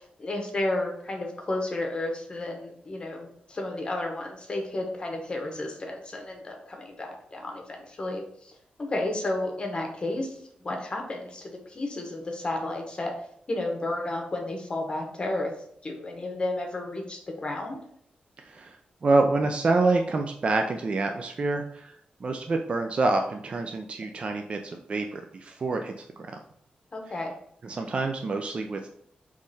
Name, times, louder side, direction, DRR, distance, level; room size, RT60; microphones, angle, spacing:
voice 1, 0.0-10.4 10.6-13.1 13.5-15.5 15.8-17.8 26.9-27.3, left 2 dB, 30° left, 2 dB, 1.0 m, -32 dB
voice 2, 18.4-21.9 22.2-26.4 27.6-28.9, right 3 dB, 40° right, 4 dB, 0.3 m, -27 dB
3.7 x 3.1 x 4.0 m, 0.69 s
wide cardioid pair, 120°, 3 cm